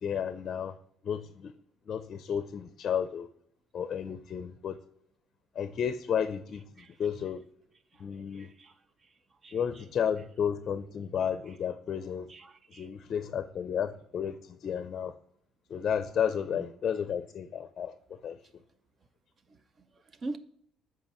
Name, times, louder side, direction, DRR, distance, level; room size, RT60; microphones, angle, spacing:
voice 1, 0.0-0.7 1.0-1.5 1.9-3.3 3.7-4.8 5.6-7.4 8.0-8.5 9.5-12.3 12.8-15.1 15.7-18.4, left 8 dB, 45° left, 0.5 m, -32 dB
voice 2, 8.3-8.7 9.4-9.8 12.3-12.9 16.5-16.7 19.8-19.9 20.2-20.4, right 2 dB, 35° right, 0.6 m, -43 dB
13.0 x 4.6 x 3.1 m
cardioid pair, 130°, 0 cm